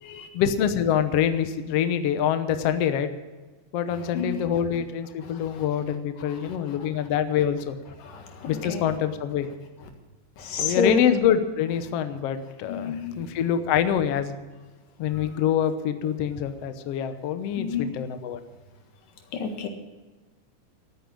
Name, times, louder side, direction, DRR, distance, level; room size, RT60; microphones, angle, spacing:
voice 1, 0.3-3.1 3.7-7.8 8.5-9.5 10.6-14.3 15.0-18.4, left 9 dB, 70° left, 10 dB, 1.6 m, -25 dB
voice 2, 4.1-4.5 5.2-5.6 6.3-6.8 8.0-8.9 10.4-11.0 12.7-13.2 17.6-17.9 19.3-19.7, left 5 dB, 85° left, 5 dB, 3.4 m, -30 dB
13.0 x 9.5 x 8.5 m, 1.3 s
omnidirectional pair, 3.8 m